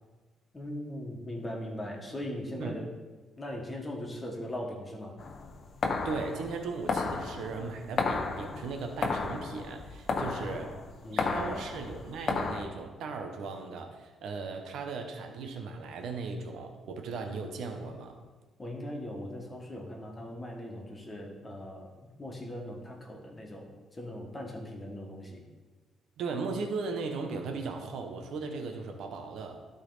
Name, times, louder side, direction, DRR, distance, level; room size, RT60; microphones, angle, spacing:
voice 1, 0.5-2.9 3.4-5.2 10.2-10.7 11.0-11.7 18.6-23.7 23.9-25.4, left 1 dB, 25° left, 0 dB, 1.7 m, -40 dB
sound 1, 5.2-12.6, left 4 dB, 50° left, 0.8 m, -33 dB
voice 2, 6.0-10.8 11.1-18.2 26.2-29.6, right 4 dB, 75° right, 4 dB, 0.9 m, -37 dB
12.0 x 4.1 x 4.0 m, 1.3 s
cardioid pair, 90°, 0 cm